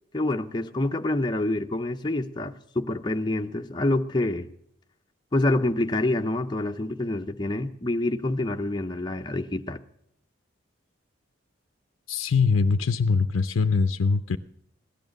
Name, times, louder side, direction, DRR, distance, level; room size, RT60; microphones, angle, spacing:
voice 1, 0.1-4.5 5.3-9.8, left 2 dB, 20° left, 0.5 m, -27 dB
voice 2, 12.1-14.4, left 4 dB, 90° left, 0.5 m, -22 dB
17.0 x 11.0 x 6.4 m
head